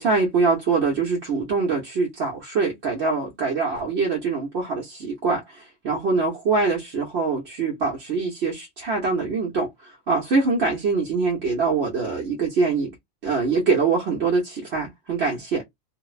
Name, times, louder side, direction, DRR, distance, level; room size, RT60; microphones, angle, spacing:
voice 1, 0.0-12.9 13.2-15.6, right 4 dB, 80° right, 1.1 m, -24 dB
2.6 x 2.0 x 2.3 m
omnidirectional pair, 1.1 m